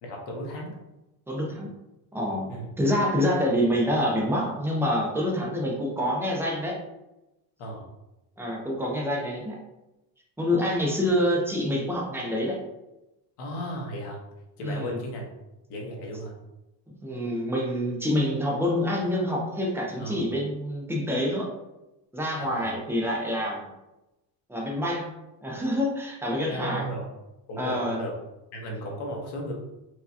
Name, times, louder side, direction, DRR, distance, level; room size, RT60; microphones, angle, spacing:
voice 1, 0.0-0.7 2.5-2.7 7.6-7.8 13.4-14.2 14.6-15.3 15.7-16.3 20.0-20.2 22.4-22.8 26.5-27.1 27.5-28.2 28.5-29.5, equal, 65° left, 0 dB, 1.1 m, -35 dB
voice 2, 1.3-1.7 2.1-2.5 2.8-6.8 8.4-9.6 10.4-12.6 14.6-15.0 17.0-21.5 22.1-23.7 24.5-25.1 25.4-26.8 27.6-28.0, equal, 5° right, -2 dB, 0.4 m, -26 dB
4.8 x 2.2 x 2.6 m, 0.96 s
cardioid pair, 160°, 44 cm